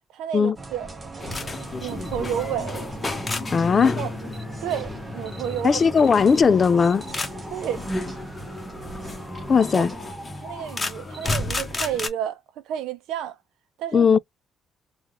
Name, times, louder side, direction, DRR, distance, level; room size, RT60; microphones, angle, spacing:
voice 1, 0.1-0.9 1.8-2.9 3.8-4.1 4.6-5.8 7.5-7.8 9.5-9.9 10.4-13.4 13.8-14.1, right 10 dB, 90° right, 0.5 m, -31 dB
sound 1, 0.6-10.1, right 2 dB, 25° right, 0.9 m, -39 dB
sound 2, 1.2-12.1, left 2 dB, 25° left, 0.9 m, -32 dB
voice 2, 3.5-4.0 5.6-7.1 9.5-9.9 13.9-14.2, left 5 dB, 40° left, 0.3 m, -18 dB
3.3 x 2.4 x 2.9 m
cardioid pair, 90°, 0 cm